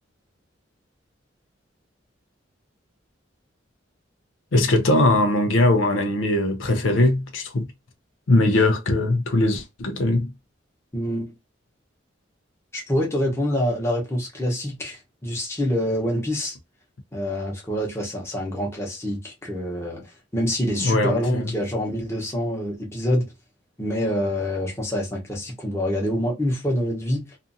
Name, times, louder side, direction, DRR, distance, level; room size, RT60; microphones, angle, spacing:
voice 1, 4.5-7.7 8.3-10.3 20.7-21.5, left 2 dB, 80° left, 0.5 m, -20 dB
voice 2, 10.9-11.3 12.7-16.5 17.1-23.3 23.8-27.4, equal, 15° left, 0.9 m, -26 dB
2.5 x 2.5 x 2.6 m
head